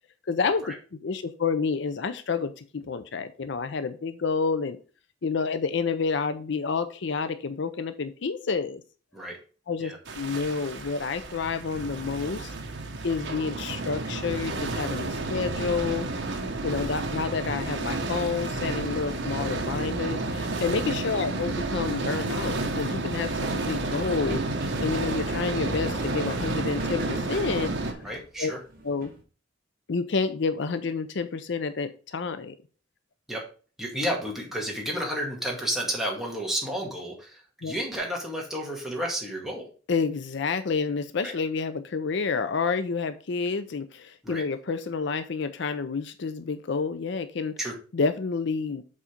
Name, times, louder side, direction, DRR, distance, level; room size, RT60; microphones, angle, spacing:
voice 1, 0.3-0.6 0.9-4.8 5.2-8.8 9.7-12.5 13.0-16.1 16.6-24.4 24.8-27.7 28.4-28.5 28.8-29.1 29.9-32.5 37.6-37.7 39.9-47.6 47.9-48.8, left 5 dB, 65° left, 11 dB, 0.5 m, -29 dB
sound 1, 10.1-27.9, right 2 dB, 65° right, 1.2 m, -31 dB
sound 2, 23.8-29.2, right 2 dB, 50° right, 2.0 m, -39 dB
voice 2, 28.0-28.6 33.3-33.4 33.8-39.7 41.2-41.3 44.2-44.4 47.6-47.7, equal, ahead, -2 dB, 2.0 m, -31 dB
7.5 x 4.1 x 5.1 m, 0.37 s
head